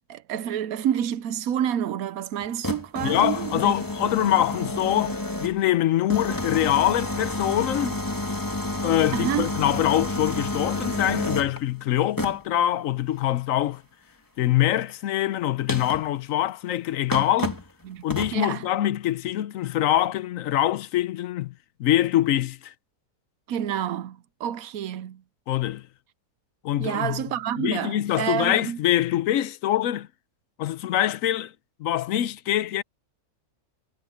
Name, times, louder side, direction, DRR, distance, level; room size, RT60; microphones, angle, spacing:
voice 1, 0.1-3.7 9.1-9.5 17.8-18.0 18.3-18.6 23.5-25.2 26.8-28.8, right 10 dB, 70° right, 1.1 m, -28 dB
sound 1, 2.4-5.7 6.1-11.6 12.2-12.5 14.9-15.0 15.7-16.1 16.7-16.8 17.1-17.7 18.1-18.4, left 2 dB, 10° left, 2.3 m, -30 dB
voice 2, 3.0-8.0 8.8-13.8 14.4-17.6 18.0-21.5 21.8-22.7 25.5-25.9 26.6-27.2 27.6-30.1 30.6-31.5 31.8-32.8, left 12 dB, 65° left, 1.0 m, -24 dB
omnidirectional pair, 1.7 m